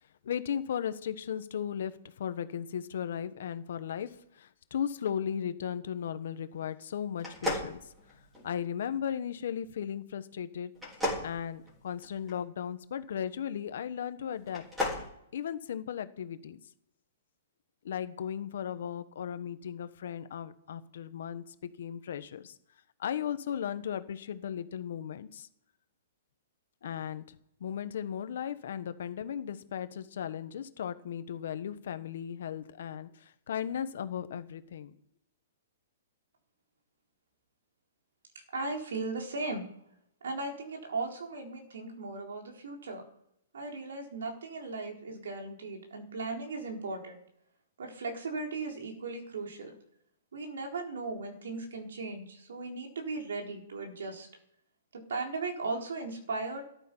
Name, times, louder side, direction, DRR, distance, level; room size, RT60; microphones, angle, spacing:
voice 1, 0.2-1.9 2.2-7.9 8.4-10.7 11.2-14.6 15.3-16.6 17.8-22.6 23.0-25.5 26.8-35.0, left 8 dB, 55° left, 11 dB, 1.1 m, -36 dB
sound 1, 7.2-8.6 10.7-12.3 14.4-15.1, left 1 dB, 5° right, 3.6 m, -34 dB
voice 2, 38.5-39.7 40.2-43.0 43.5-47.2 47.8-49.7 50.3-54.3 54.9-56.6, right 3 dB, 90° right, 1 dB, 4.2 m, -37 dB
14.0 x 11.5 x 5.6 m, 0.75 s
hypercardioid pair, 175°, 0 cm